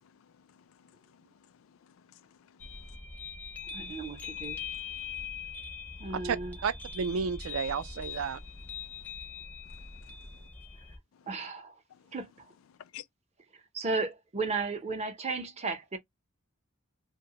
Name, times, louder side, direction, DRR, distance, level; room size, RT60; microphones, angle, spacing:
voice 1, 0.1-1.3 1.5-2.6 9.7-9.8 11.9-12.1 12.8-13.0, left 11 dB, 75° left, 0.3 m, -53 dB
sound 1, 2.6-11.0, left 6 dB, 10° left, 0.5 m, -42 dB
voice 2, 3.7-4.6 6.0-6.6 11.3-11.8 12.1-12.3 13.5-16.0, right 3 dB, 30° right, 0.6 m, -34 dB
voice 3, 6.1-8.4, right 6 dB, 80° right, 0.4 m, -32 dB
2.7 x 2.2 x 2.8 m
head